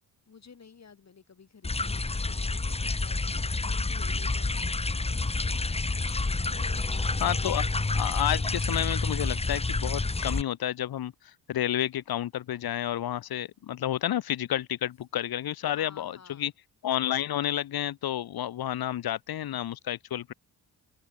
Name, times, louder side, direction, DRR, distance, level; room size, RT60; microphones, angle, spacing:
voice 1, 0.3-5.6 5.9-7.7 15.7-16.5, left 6 dB, 45° left, 8.0 m, -52 dB
sound 1, 1.6-10.4, left 3 dB, 15° left, 1.2 m, -29 dB
voice 2, 7.2-7.6 7.9-11.1 11.5-16.5 16.8-20.3, left 11 dB, 70° left, 1.9 m, -30 dB
cardioid pair, 85°, 38 cm